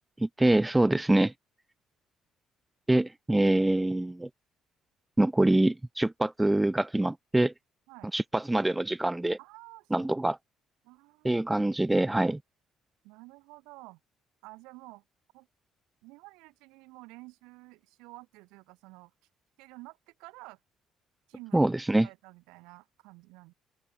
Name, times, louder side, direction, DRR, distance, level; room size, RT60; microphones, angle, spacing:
voice 1, 0.2-1.3 2.9-4.3 5.2-7.5 8.1-9.4 9.9-10.4 11.2-12.4 21.5-22.1, right 1 dB, 10° right, 0.7 m, -25 dB
voice 2, 9.4-10.1 10.8-11.3 12.2-12.3 13.0-14.0 14.4-15.0 15.3-15.5 16.0-19.1 19.6-20.6 21.3-21.7 22.0-23.5, right 24 dB, 85° right, 4.7 m, -50 dB
open air
supercardioid pair, 70°, 0 cm